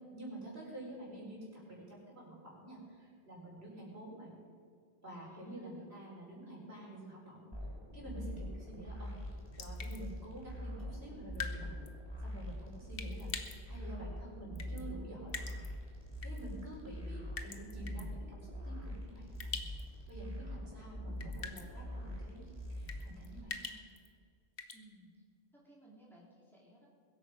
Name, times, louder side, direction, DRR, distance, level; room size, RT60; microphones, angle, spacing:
voice 1, 0.1-4.3 5.0-7.5 7.9-9.2 9.6-11.8 12.2-13.3 13.7-15.4 16.2-19.6 20.1-23.7, right 1 dB, 75° right, -4 dB, 4.8 m, -49 dB
voice 2, 5.2-6.1 24.7-25.1 25.5-26.9, equal, ahead, -6 dB, 3.9 m, -60 dB
sound 1, 7.5-23.4, equal, 25° left, 4.7 m, -44 dB
Dripping tap into sink (slowly), 9.5-10.0 11.3-11.6 11.9-12.0 13.0-13.6 14.5-14.8 15.3-15.7 16.2-16.4 17.4-18.0 19.4-19.8 20.1-20.2 21.2-21.7 22.9-24.1 24.6-24.8, left 5 dB, 60° left, 1.3 m, -42 dB
21.5 x 8.7 x 5.4 m, 2.2 s
omnidirectional pair, 1.1 m